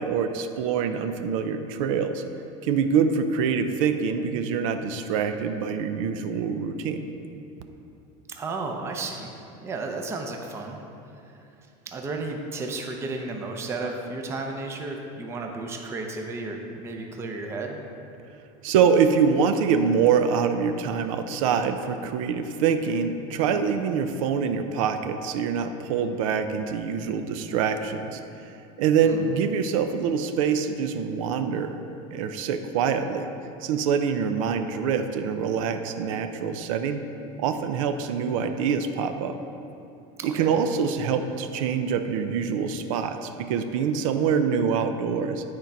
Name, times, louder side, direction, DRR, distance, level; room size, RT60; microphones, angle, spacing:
voice 1, 0.0-2.2 2.6-7.1 18.6-28.2 28.8-31.8 32.1-33.3 33.6-37.0 37.4-39.4 40.2-45.4, right 6 dB, 80° right, 8 dB, 0.6 m, -25 dB
voice 2, 8.4-9.3 9.6-10.8 11.9-17.8 29.0-29.2 40.2-40.5, right 3 dB, 15° right, 2 dB, 0.5 m, -33 dB
9.7 x 4.5 x 5.3 m, 2.8 s
cardioid pair, 170°, 17 cm